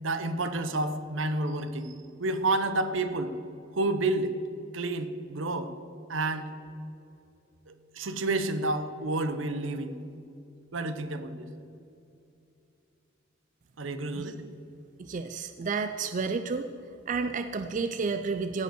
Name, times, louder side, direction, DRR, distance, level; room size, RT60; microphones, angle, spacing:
voice 1, 0.0-3.3 3.7-4.3 4.7-5.7 6.1-6.5 7.7-10.0 10.7-11.5 13.8-14.4, right 2 dB, 75° right, 10 dB, 0.8 m, -30 dB
voice 2, 15.0-16.7 17.1-18.6, right 4 dB, 40° right, 8 dB, 0.4 m, -31 dB
16.0 x 5.4 x 6.2 m, 2.7 s
head